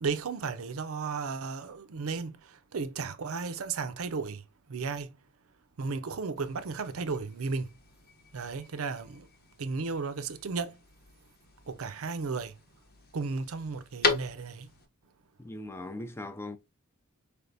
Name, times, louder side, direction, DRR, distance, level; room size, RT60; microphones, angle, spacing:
voice 1, 0.0-2.4 2.7-4.4 4.7-5.1 5.8-7.7 8.3-9.3 9.6-10.7 11.7-12.5 13.1-14.7, right 4 dB, 85° right, 0.6 m, -34 dB
sound 1, 6.4-14.9, left 4 dB, 50° left, 0.8 m, -38 dB
voice 2, 15.4-16.6, left 2 dB, 10° left, 0.4 m, -39 dB
4.8 x 3.4 x 2.6 m
head